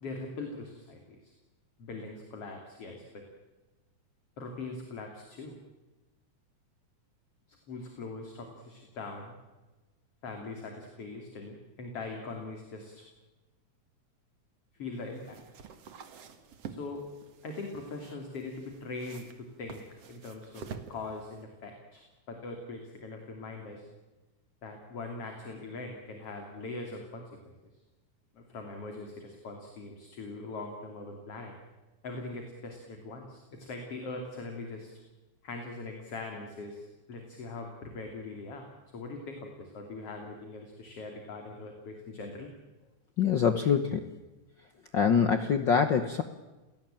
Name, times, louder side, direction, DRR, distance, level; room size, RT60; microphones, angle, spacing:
voice 1, 0.0-1.3 1.8-3.2 4.4-5.6 7.5-9.3 10.2-13.1 14.8-15.4 16.7-17.0 17.4-23.9 24.6-27.3 28.3-31.6 32.0-34.9 35.4-38.7 38.9-42.5, left 3 dB, 45° left, 3 dB, 3.7 m, -41 dB
sound 1, 14.9-21.4, right 6 dB, 55° right, 2.6 m, -48 dB
voice 2, 43.2-44.1 44.9-46.2, left 7 dB, 70° left, 9 dB, 1.1 m, -25 dB
29.5 x 18.0 x 9.0 m, 1.2 s
omnidirectional pair, 3.7 m